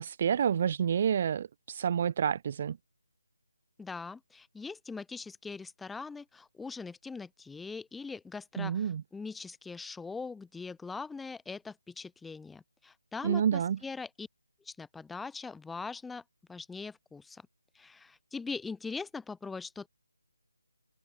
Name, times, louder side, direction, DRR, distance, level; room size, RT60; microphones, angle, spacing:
voice 1, 0.0-2.8 8.6-9.0 13.2-13.8, right 8 dB, 35° right, 1.8 m, -29 dB
voice 2, 3.8-14.3 14.6-16.2 16.5-17.4 17.7-19.9, left 4 dB, 5° left, 6.8 m, -41 dB
figure-of-eight pair, 155°, 0 cm